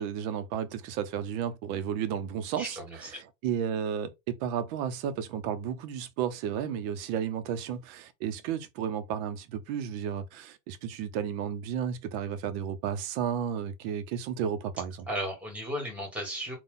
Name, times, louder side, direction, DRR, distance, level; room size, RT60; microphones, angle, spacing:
voice 1, 0.0-2.8 3.2-15.0, right 8 dB, 50° right, 0.7 m, -33 dB
voice 2, 2.6-3.1 15.1-16.6, equal, 5° right, 1.5 m, -35 dB
4.1 x 2.4 x 3.7 m
supercardioid pair, 155°, 42 cm